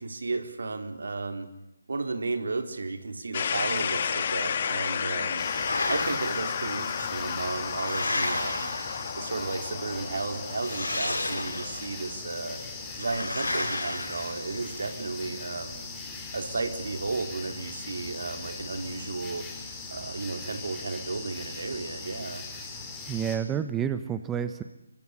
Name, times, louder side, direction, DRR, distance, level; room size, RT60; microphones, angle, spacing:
voice 1, 0.0-1.5 1.9-5.4 5.9-8.7 9.1-12.6 13.0-15.8 16.3-19.4 19.9-22.4, right 3 dB, 65° right, 7 dB, 4.1 m, -33 dB
sound 1, 3.3-13.2, left 7 dB, 40° left, 2.1 m, -33 dB
sound 2, 5.2-6.5 7.3-9.4 10.5-11.9 13.0-14.9, left 2 dB, 85° left, 7.0 m, -33 dB
sound 3, 5.4-23.4, left 3 dB, 10° left, 4.6 m, -40 dB
voice 2, 23.1-24.6, right 8 dB, 10° right, 11 dB, 1.0 m, -29 dB
24.0 x 24.0 x 9.9 m, 0.85 s
figure-of-eight pair, 155°, 0 cm